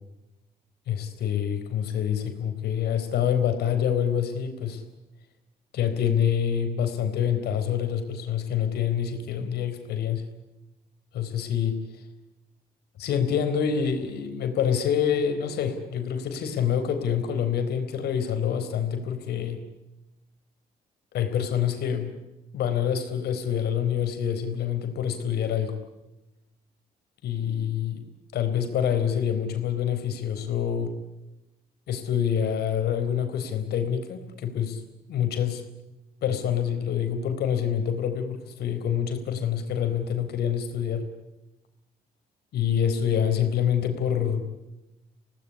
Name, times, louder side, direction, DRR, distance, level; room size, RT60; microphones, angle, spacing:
voice 1, 0.9-4.8 5.7-10.2 11.1-11.8 13.0-19.6 21.1-22.1 22.5-25.8 27.2-27.9 28.3-30.9 31.9-34.8 35.1-35.6 36.2-41.1 42.5-44.4, left 8 dB, 85° left, 7 dB, 4.1 m, -26 dB
26.0 x 18.0 x 9.8 m, 0.96 s
cardioid pair, 90°, 16 cm